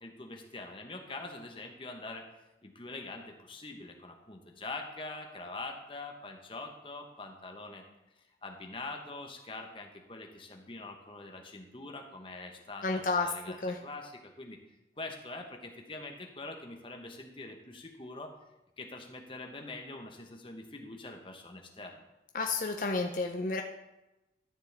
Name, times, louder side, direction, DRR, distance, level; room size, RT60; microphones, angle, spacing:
voice 1, 0.0-2.2 2.6-7.8 8.4-14.6 15.0-18.3 18.8-21.9, left 2 dB, 30° left, 3 dB, 1.0 m, -44 dB
voice 2, 12.8-13.3 13.6-13.8 22.3-23.6, left 3 dB, 45° left, 3 dB, 0.5 m, -31 dB
12.5 x 6.9 x 3.4 m, 0.97 s
head